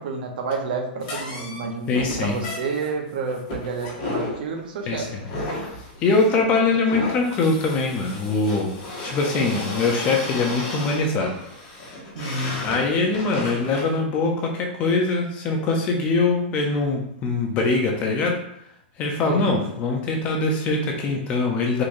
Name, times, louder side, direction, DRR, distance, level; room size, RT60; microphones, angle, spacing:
voice 1, 0.0-5.3 12.1-12.7 19.3-19.7, right 4 dB, 60° right, 2 dB, 0.8 m, -30 dB
sound 1, 1.0-13.9, left 2 dB, 40° left, 1.2 m, -33 dB
voice 2, 1.9-2.4 4.9-5.2 6.0-8.7 9.0-11.3 12.6-18.4 19.0-21.8, left 3 dB, 25° left, 1 dB, 0.5 m, -22 dB
3.7 x 3.0 x 2.6 m, 0.75 s
hypercardioid pair, 160°, 6 cm